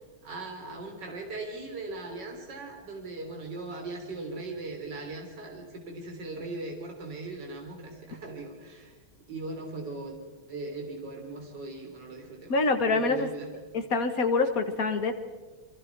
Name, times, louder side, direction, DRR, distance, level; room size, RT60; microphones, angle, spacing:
voice 1, 0.2-8.9 9.3-10.2 10.5-12.6 12.9-13.5, right 3 dB, 55° right, 1 dB, 4.2 m, -39 dB
voice 2, 12.5-13.3 13.7-15.1, left 3 dB, 45° left, 7 dB, 1.9 m, -25 dB
29.5 x 23.0 x 4.7 m, 1.3 s
omnidirectional pair, 2.4 m